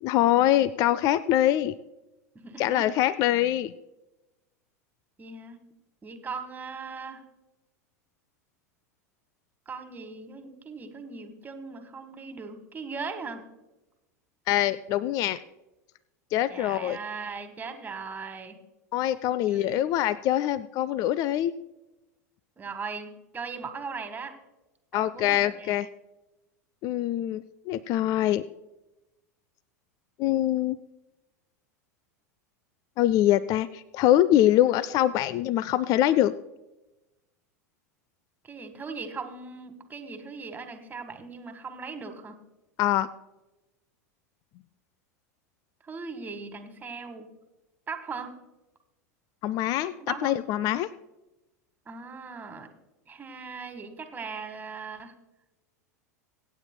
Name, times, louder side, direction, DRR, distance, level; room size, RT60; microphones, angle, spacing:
voice 1, 0.0-1.7 2.6-3.7 14.5-15.4 16.3-17.0 18.9-21.5 24.9-25.9 26.8-28.4 30.2-30.8 33.0-36.3 42.8-43.1 49.4-50.9, left 13 dB, 40° left, 18 dB, 0.4 m, -24 dB
voice 2, 2.3-2.9 5.2-5.6 6.0-7.2 9.6-13.4 16.5-18.6 19.5-19.8 22.6-24.4 24.9-25.8 38.4-42.3 45.8-47.3 47.9-48.3 50.0-50.3 51.8-52.7 53.1-55.1, right 4 dB, 20° right, 7 dB, 1.6 m, -39 dB
24.5 x 9.0 x 2.2 m, 1.0 s
hypercardioid pair, 90°, 9 cm